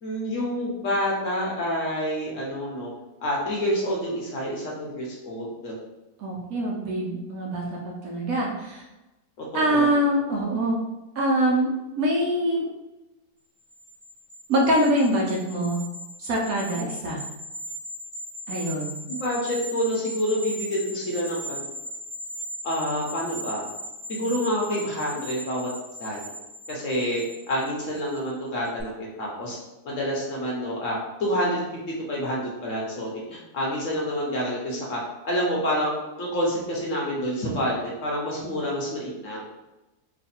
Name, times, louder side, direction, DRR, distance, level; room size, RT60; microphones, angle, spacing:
voice 1, 0.0-2.9 3.2-5.7 9.5-9.9 19.1-21.6 22.6-23.6 24.1-25.7 26.0-26.2 26.7-29.6 29.8-31.6 32.1-35.0 35.2-35.9 36.2-39.4, equal, 55° left, -4 dB, 1.1 m, -28 dB
voice 2, 6.2-8.8 9.5-10.7 11.2-11.7 12.0-12.7 14.5-15.8 16.2-17.2 18.5-19.0, right 1 dB, 65° right, -2 dB, 1.0 m, -24 dB
sound 1, 13.7-28.3 28.6-28.8, equal, 30° right, 0.5 m, -38 dB
3.2 x 2.2 x 4.2 m, 1.0 s
omnidirectional pair, 1.8 m